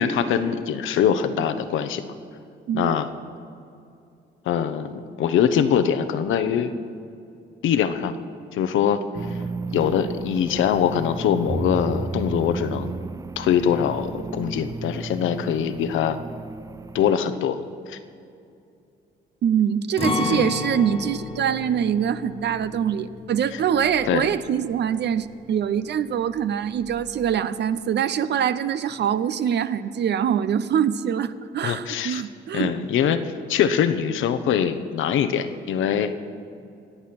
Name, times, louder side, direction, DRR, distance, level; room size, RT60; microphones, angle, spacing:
voice 1, 0.0-2.0 2.7-3.1 4.5-6.7 7.6-8.1 8.5-9.0 9.7-12.9 13.4-16.2 16.9-17.6 17.9-18.0 20.2-20.5 24.1-24.3 31.6-32.2 32.5-36.1, left 8 dB, 80° left, 10 dB, 1.0 m, -23 dB
sound 1, 9.1-17.1, right 3 dB, 15° right, 0.4 m, -33 dB
voice 2, 19.4-32.7, right 8 dB, 60° right, 13 dB, 0.6 m, -24 dB
Acoustic guitar, 20.0-25.9 26.2-26.4 26.8-27.3, left 3 dB, 30° left, 1.4 m, -33 dB
24.5 x 8.4 x 6.0 m, 2.5 s
cardioid pair, 90°, 20 cm